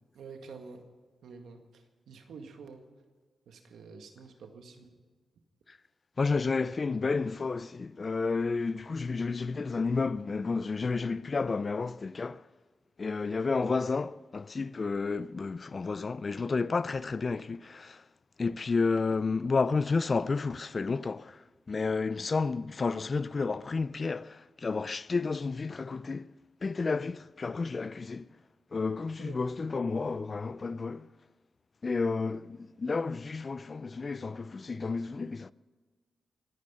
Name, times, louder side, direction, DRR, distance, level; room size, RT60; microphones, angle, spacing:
voice 1, 0.2-0.8 1.2-1.6 2.1-2.8 3.5-4.9 29.2-29.4, right 5 dB, 85° right, 1.9 m, -47 dB
voice 2, 6.2-12.4 13.0-18.0 18.4-21.4 21.7-26.3 26.6-28.3 28.7-31.1 31.8-35.5, left 4 dB, 45° left, 0.5 m, -31 dB
25.0 x 9.7 x 5.5 m
cardioid pair, 65°, 0 cm